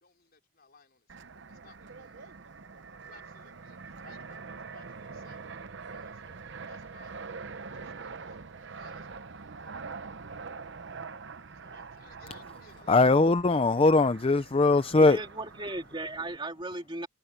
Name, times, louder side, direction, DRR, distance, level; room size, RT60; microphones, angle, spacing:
voice 1, 0.0-1.1 1.5-2.4 3.0-4.8 5.1-5.4 5.9-6.4 6.7-7.1 7.8-9.9 11.6-13.1, left 4 dB, 50° left, 4.4 m, -58 dB
Fixed-wing aircraft airplane, 1.1-16.4, right 4 dB, 60° right, 0.8 m, -44 dB
voice 2, 12.9-15.2, left 3 dB, 30° left, 0.5 m, -21 dB
voice 3, 14.9-17.1, right 2 dB, 25° right, 2.7 m, -36 dB
head